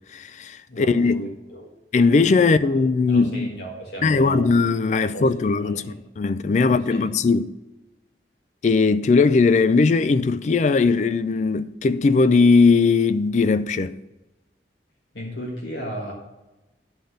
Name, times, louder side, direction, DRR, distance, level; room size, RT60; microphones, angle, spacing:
voice 1, 0.1-1.3 1.9-3.6 4.0-7.5 8.6-14.0, left 4 dB, 40° left, 0.3 m, -19 dB
voice 2, 0.7-1.6 2.4-2.8 3.1-4.5 5.0-6.0 6.6-7.0 15.1-16.1, equal, 80° left, 1.5 m, -35 dB
10.5 x 3.9 x 6.5 m
head